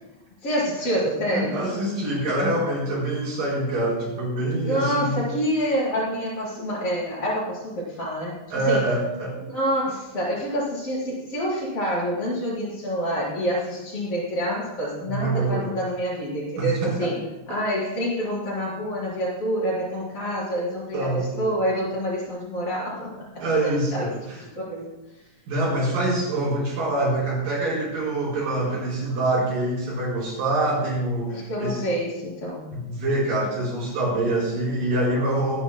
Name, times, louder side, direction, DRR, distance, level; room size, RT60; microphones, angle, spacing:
voice 1, 0.4-1.6 4.6-8.3 8.7-8.8 9.5-17.2 17.5-24.0 24.6-24.9 31.3-32.7, equal, 45° left, -5 dB, 5.2 m, -27 dB
voice 2, 1.3-5.2 8.5-9.4 15.0-15.7 16.6-17.1 20.9-21.4 23.4-24.4 25.5-31.8 32.7-35.6, right 2 dB, 85° right, -4 dB, 5.9 m, -25 dB
24.0 x 10.5 x 2.2 m, 0.97 s
omnidirectional pair, 3.8 m